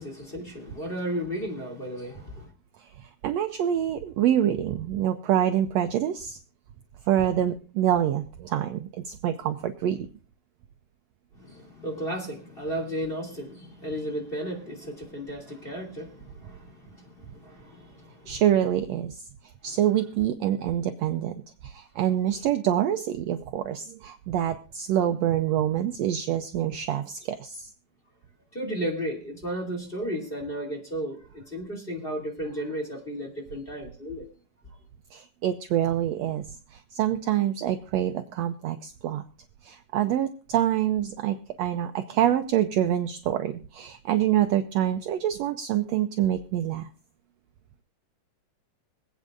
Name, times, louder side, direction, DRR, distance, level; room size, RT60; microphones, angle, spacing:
voice 1, 0.0-2.5 11.3-18.4 19.6-19.8 28.5-34.2, equal, 20° left, 2.6 m, -34 dB
voice 2, 3.2-6.4 7.1-10.1 18.3-19.2 19.6-21.3 21.6-27.7 35.1-36.5 36.7-39.2 39.6-46.9, right 11 dB, 80° right, 1.6 m, -26 dB
25.5 x 8.6 x 2.5 m
omnidirectional pair, 3.7 m